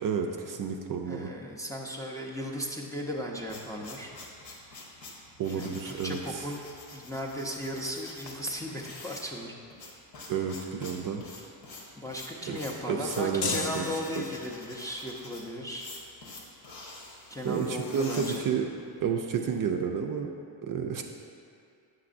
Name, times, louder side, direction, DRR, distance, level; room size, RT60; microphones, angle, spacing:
voice 1, 0.0-1.3 5.4-6.2 10.3-11.2 12.5-12.6 12.9-14.2 17.4-18.7 19.0-20.3 20.6-21.0, right 6 dB, 45° right, 3 dB, 0.4 m, -30 dB
voice 2, 1.0-4.1 5.6-6.6 6.9-9.6 12.0-15.9 17.3-18.5, equal, 10° left, -3 dB, 0.5 m, -36 dB
sound 1, 3.1-19.0, left 3 dB, 75° left, 1.3 m, -46 dB
sound 2, 13.4-14.7, left 4 dB, 50° left, 0.7 m, -34 dB
7.6 x 5.9 x 2.5 m, 2.4 s
cardioid pair, 95°, 47 cm